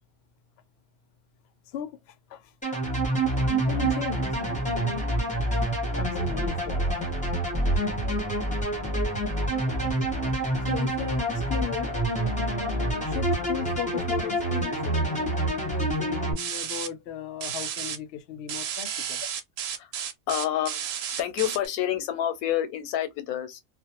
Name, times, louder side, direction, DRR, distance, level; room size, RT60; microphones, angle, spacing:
voice 1, 1.7-2.5 3.4-5.2 5.9-7.0 10.7-19.2, left 9 dB, 65° left, 0.6 m, -36 dB
sound 1, 2.6-16.3, right 1 dB, 5° left, 0.6 m, -27 dB
sound 2, 16.4-16.9 17.4-18.0 18.5-21.7, right 8 dB, 80° right, 1.1 m, -32 dB
voice 2, 20.3-20.9 21.2-23.6, left 11 dB, 90° left, 1.1 m, -28 dB
2.5 x 2.1 x 2.8 m
omnidirectional pair, 1.5 m